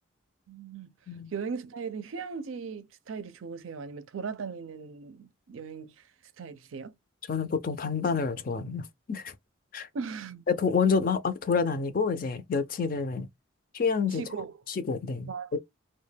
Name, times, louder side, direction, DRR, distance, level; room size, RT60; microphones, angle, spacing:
voice 1, 0.5-0.9 1.3-5.9 6.4-6.9 9.9-10.4 14.1-14.5 15.3-15.5, right 5 dB, 80° right, 0.5 m, -38 dB
voice 2, 7.3-9.3 9.7-9.9 10.5-13.3 13.7-14.2 14.7-15.6, left 5 dB, 45° left, 0.4 m, -28 dB
2.2 x 2.1 x 3.3 m
head